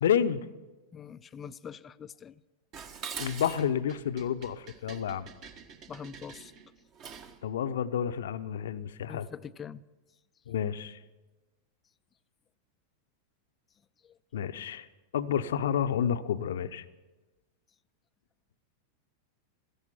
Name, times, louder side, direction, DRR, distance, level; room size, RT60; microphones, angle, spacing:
voice 1, 0.0-0.5 3.2-5.3 7.4-9.3 10.5-11.0 14.3-14.9 15.1-16.8, left 8 dB, 60° left, 0.7 m, -30 dB
voice 2, 0.9-2.4 5.9-6.5 9.1-9.8 14.0-14.2, left 7 dB, 20° left, 0.5 m, -44 dB
Dishes pots and pans, 2.7-7.4, right 6 dB, 35° right, 1.5 m, -44 dB
17.0 x 15.0 x 5.8 m
figure-of-eight pair, 90°, 0 cm